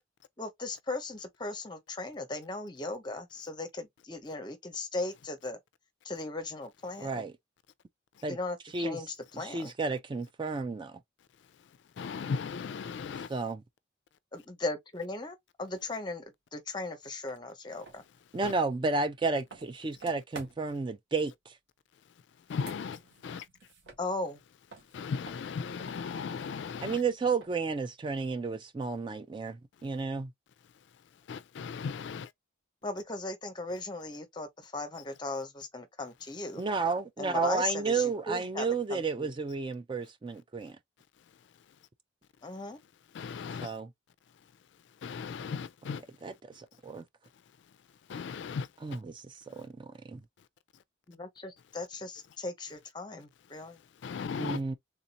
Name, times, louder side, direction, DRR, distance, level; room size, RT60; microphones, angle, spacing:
voice 1, 0.4-5.6 6.0-7.2 8.3-9.7 14.3-16.2 16.5-18.0 24.0-24.4 32.8-36.6 37.2-39.3 42.4-42.8 51.1-53.8, left 2 dB, 25° left, 0.7 m, -37 dB
voice 2, 7.0-7.3 8.2-8.4 8.7-9.0 9.4-11.0 13.3-13.6 18.3-21.6 26.8-30.3 36.6-40.8 43.6-43.9 46.2-47.0 48.8-50.2 54.4-54.7, right 4 dB, 25° right, 0.3 m, -32 dB
voice 3, 11.4-13.4 18.4-18.5 22.0-23.5 24.8-27.0 29.8-29.9 30.6-32.3 41.2-41.8 43.1-43.8 44.3-46.0 46.7-46.8 47.3-47.8 48.1-49.0 49.5-49.7 50.4-50.5 50.7-50.8 53.5-54.6, left 5 dB, 60° left, 0.3 m, -39 dB
sound 1, 17.3-17.4 17.8-20.8 22.4-24.4 24.7-27.8, right 4 dB, 65° right, 1.4 m, -51 dB
3.5 x 2.6 x 2.8 m
head